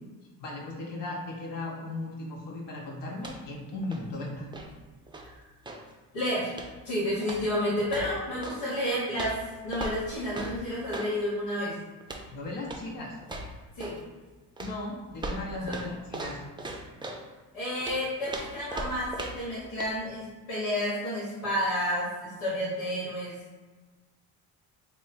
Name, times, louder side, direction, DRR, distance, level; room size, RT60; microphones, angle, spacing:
voice 1, 0.4-4.5 12.3-13.2 14.6-16.4, left 2 dB, 70° left, -2 dB, 0.9 m, -36 dB
sound 1, 3.2-3.6 3.8-5.9 6.5-6.9 7.2-8.6 9.1-11.2 12.0-12.3 12.6-12.9 13.2-14.1 14.6-17.3 17.8-19.5 19.8-20.0, right 2 dB, 10° right, 0.4 m, -39 dB
voice 2, 6.1-6.5 6.8-11.7 13.8-13.9 15.7-15.8 17.5-23.3, equal, 90° left, -8 dB, 1.1 m, -30 dB
3.0 x 2.1 x 4.0 m, 1.3 s
supercardioid pair, 55°, 44 cm